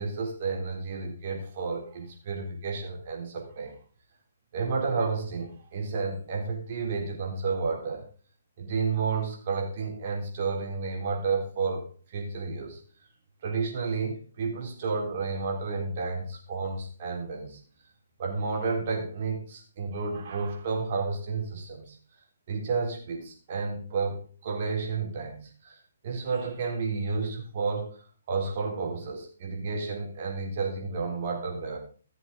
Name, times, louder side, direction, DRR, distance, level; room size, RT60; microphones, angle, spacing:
voice 1, 0.0-3.8 4.5-8.0 8.6-12.8 13.4-17.6 18.2-22.0 22.5-28.0 28.3-31.8, right 4 dB, 45° right, 0 dB, 3.8 m, -31 dB
15.0 x 7.5 x 3.7 m, 0.40 s
figure-of-eight pair, 130°, 0 cm